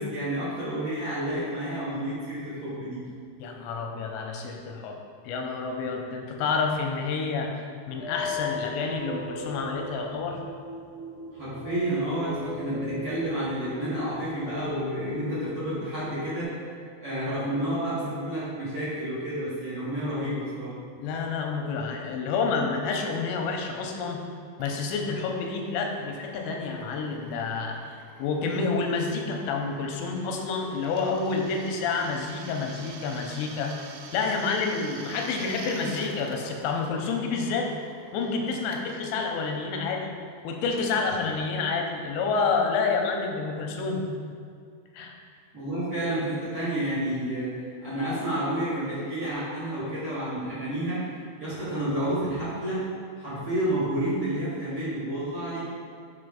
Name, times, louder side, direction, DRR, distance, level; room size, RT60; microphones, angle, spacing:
voice 1, 0.0-3.0 11.3-16.6 17.0-20.7 45.5-51.1 51.4-52.8 53.2-55.7, right 1 dB, 50° right, -11 dB, 1.8 m, -30 dB
voice 2, 3.4-5.0 5.2-7.5 7.9-10.4 21.0-24.2 24.6-33.8 34.1-37.7 38.1-40.2 40.4-44.0 44.9-45.1, left 4 dB, 90° left, 2 dB, 2.9 m, -29 dB
sound 1, 8.0-16.4, left 2 dB, 70° right, 2.5 m, -37 dB
Drill, 24.6-40.9, right 4 dB, 90° right, 2.1 m, -48 dB
6.9 x 4.3 x 5.0 m, 2.3 s
omnidirectional pair, 5.1 m